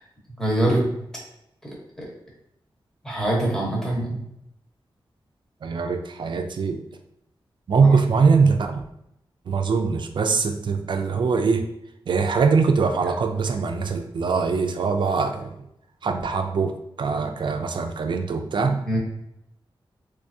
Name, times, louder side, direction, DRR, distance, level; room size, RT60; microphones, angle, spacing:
voice 1, 0.4-0.9 1.6-2.0 3.0-4.2 18.6-19.0, right 1 dB, 5° left, -4 dB, 1.0 m, -24 dB
voice 2, 5.6-6.8 7.7-8.8 9.5-11.7 12.1-15.6 16.0-18.8, right 5 dB, 60° right, 5 dB, 0.3 m, -22 dB
3.4 x 3.2 x 2.7 m, 0.80 s
wide cardioid pair, 160°, 9 cm